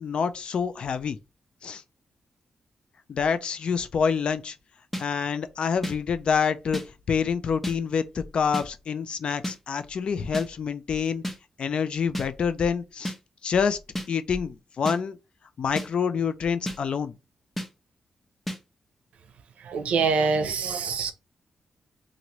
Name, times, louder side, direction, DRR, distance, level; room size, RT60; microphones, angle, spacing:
voice 1, 0.0-1.2 1.6-1.8 3.1-4.6 5.0-6.8 7.1-11.2 11.6-13.1 13.4-13.8 14.1-15.2 15.6-17.1, left 6 dB, 50° left, 0.3 m, -27 dB
sound 1, 4.9-5.1 5.8-6.0 6.7-6.9 7.6-7.8 8.5-8.7 9.4-9.6 10.3-10.5 11.2-11.4 12.1-12.3 13.1-13.2 14.0-14.1 14.9-15.0 15.8-15.9 16.7-16.8 17.6-17.7 18.5-18.6, equal, 10° left, 0.6 m, -31 dB
voice 2, 19.6-21.1, right 5 dB, 80° right, 0.5 m, -25 dB
3.0 x 2.5 x 2.8 m
wide cardioid pair, 160°, 2 cm